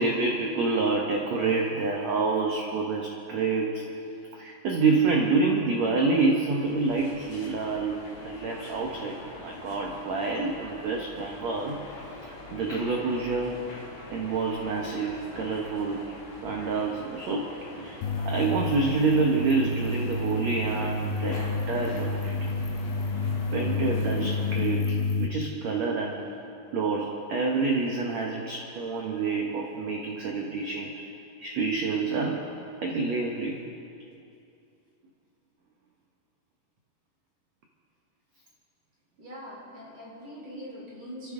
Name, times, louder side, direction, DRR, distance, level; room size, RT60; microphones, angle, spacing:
voice 1, 0.0-3.8 4.3-11.8 12.2-13.7 14.1-16.1 16.4-17.5 17.8-22.5 23.5-26.2 26.7-31.0 31.4-32.5 32.8-33.6 41.2-41.3, right 4 dB, 85° right, 0 dB, 1.5 m, -28 dB
sound 1, 6.5-24.6, left 2 dB, 65° left, 4.2 m, -44 dB
sound 2, 18.0-25.3, left 3 dB, 85° left, 3.0 m, -29 dB
voice 2, 39.2-41.3, equal, 40° right, -5 dB, 4.6 m, -42 dB
27.5 x 13.5 x 3.8 m, 2.6 s
omnidirectional pair, 4.8 m